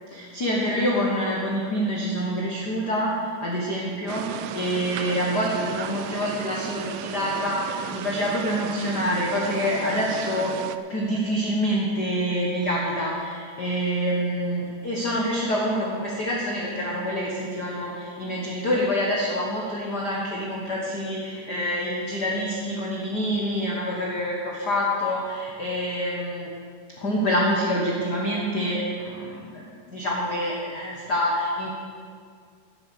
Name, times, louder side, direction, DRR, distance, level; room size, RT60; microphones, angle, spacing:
voice 1, 0.1-10.5 10.9-26.5 27.0-31.7, equal, 55° left, -3 dB, 1.1 m, -26 dB
sound 1, 4.1-10.8, right 12 dB, 80° right, 2.1 m, -35 dB
11.5 x 9.6 x 7.0 m, 2.1 s
omnidirectional pair, 4.1 m